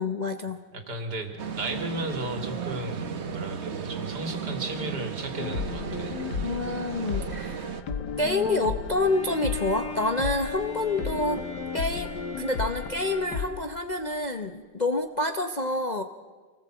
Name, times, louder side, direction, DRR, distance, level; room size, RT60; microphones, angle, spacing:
voice 1, 0.0-0.6 6.4-7.7 8.2-11.4 11.7-16.0, left 2 dB, 35° left, 6 dB, 0.8 m, -28 dB
voice 2, 0.7-6.2, right 2 dB, 70° right, 5 dB, 3.0 m, -35 dB
sound 1, 1.4-7.8, right 7 dB, 45° right, 1.3 m, -35 dB
sound 2, 5.4-13.5, left 6 dB, 75° left, 1.8 m, -34 dB
Bowed string instrument, 9.0-14.0, left 4 dB, 20° right, 4.1 m, -39 dB
25.5 x 19.5 x 7.7 m, 1.4 s
omnidirectional pair, 1.8 m